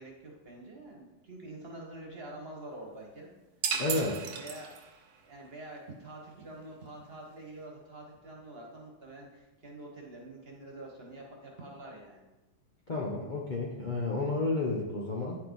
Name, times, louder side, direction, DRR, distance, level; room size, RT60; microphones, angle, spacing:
voice 1, 0.0-3.3 4.1-4.7 5.2-12.2, right 1 dB, 35° right, -1 dB, 1.2 m, -46 dB
sound 1, 3.6-5.1, right 6 dB, 65° right, 1.0 m, -34 dB
voice 2, 3.8-4.2 12.9-15.4, left 2 dB, 70° left, -2 dB, 0.4 m, -31 dB
9.4 x 4.4 x 4.0 m, 1.0 s
omnidirectional pair, 2.2 m